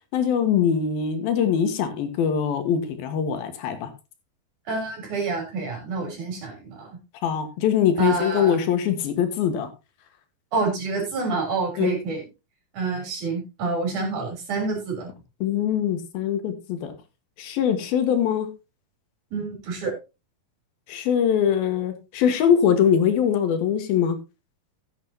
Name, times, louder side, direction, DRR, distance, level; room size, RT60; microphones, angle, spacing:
voice 1, 0.1-3.9 7.2-9.7 11.8-12.0 15.4-16.9 17.4-18.5 20.9-24.2, left 8 dB, 85° left, 9 dB, 3.3 m, -22 dB
voice 2, 4.7-6.9 8.0-8.6 10.5-12.2 12.7-15.1 19.3-19.9, right 4 dB, 55° right, 2 dB, 5.1 m, -28 dB
15.5 x 8.6 x 2.8 m, 0.27 s
omnidirectional pair, 4.2 m